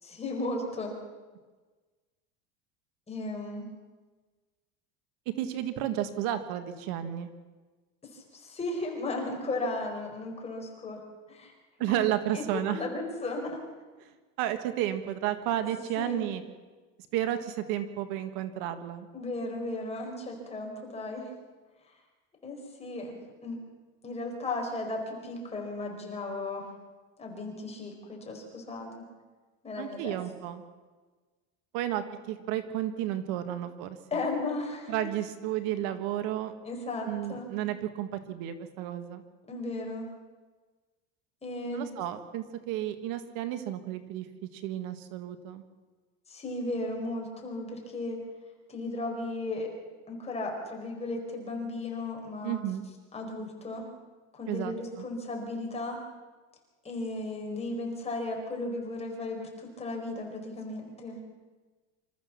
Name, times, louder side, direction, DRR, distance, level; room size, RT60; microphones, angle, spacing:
voice 1, 0.0-0.9 3.1-3.7 8.1-11.0 11.3-11.5 11.9-12.1 12.3-13.6 15.6-16.2 19.1-21.3 22.4-23.1 23.4-23.6 24.0-26.7 27.2-29.0 29.6-30.2 34.1-34.9 36.6-37.5 39.5-40.1 41.4-41.8 46.3-48.3 48.7-49.7 50.1-52.6 53.1-53.9 54.3-56.0 56.8-61.2, left 2 dB, 15° left, 0 dB, 4.7 m, -35 dB
voice 2, 5.4-7.3 11.8-12.8 14.1-16.4 17.1-19.1 29.8-30.6 31.7-34.0 34.9-36.5 37.0-39.2 41.7-44.3 44.5-45.6 52.4-52.9 54.5-55.0, right 12 dB, 65° right, 9 dB, 1.7 m, -32 dB
25.5 x 14.0 x 7.3 m, 1.3 s
cardioid pair, 145°, 36 cm